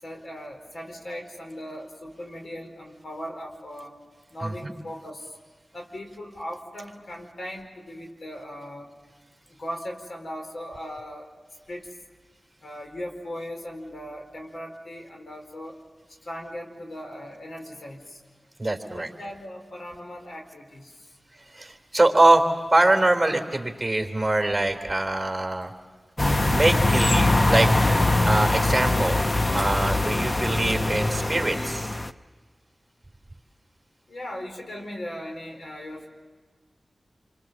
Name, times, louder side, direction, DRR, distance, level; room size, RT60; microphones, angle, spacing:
voice 1, 0.0-3.9 4.3-5.4 5.7-8.9 9.5-11.3 11.7-11.9 12.6-15.7 16.2-18.2 18.8-21.1 34.1-36.1, equal, 75° left, 2 dB, 4.5 m, -38 dB
voice 2, 4.4-4.7 18.6-19.1 21.5-22.4 22.7-25.7 26.5-27.7 28.2-29.2 29.5-32.0, right 2 dB, 20° right, 4 dB, 3.5 m, -23 dB
sound 1, 26.2-32.1, left 2 dB, 35° left, 0.8 m, -22 dB
28.5 x 24.5 x 7.5 m, 1.5 s
wide cardioid pair, 55°, 0 cm